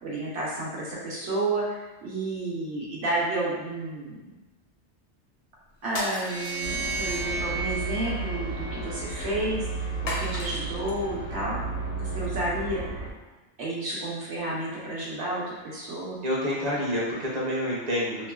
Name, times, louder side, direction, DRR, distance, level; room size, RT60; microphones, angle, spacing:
voice 1, 0.0-4.4 5.8-9.7 10.0-11.6 11.9-13.0 13.6-16.2, right 2 dB, 75° right, -5 dB, 1.1 m, -31 dB
sound 1, 5.9-7.3 10.1-11.0, left 1 dB, 50° left, 0.4 m, -36 dB
sound 2, 6.0-9.3, right 4 dB, 20° right, 0.4 m, -34 dB
sound 3, 6.6-13.1, right 3 dB, 80° left, 0.8 m, -33 dB
voice 2, 16.2-18.3, equal, 40° right, -6 dB, 0.8 m, -28 dB
2.9 x 2.2 x 2.3 m, 1.1 s
omnidirectional pair, 1.2 m